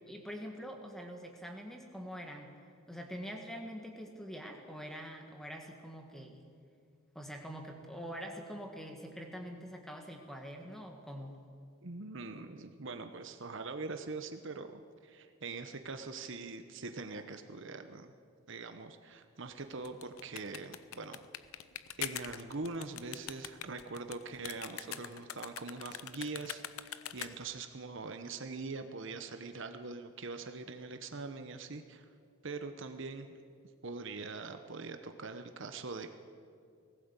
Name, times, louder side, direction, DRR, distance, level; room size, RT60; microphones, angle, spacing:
voice 1, 0.1-2.5 2.9-6.4 7.2-11.4, equal, ahead, 3 dB, 1.8 m, -45 dB
voice 2, 11.8-18.1 18.5-21.2 22.0-32.1 32.4-33.4 33.8-36.1, right 3 dB, 55° right, 7 dB, 0.9 m, -43 dB
sound 1, 19.7-27.6, left 10 dB, 75° left, 0.8 m, -43 dB
19.5 x 16.5 x 8.2 m, 2.3 s
head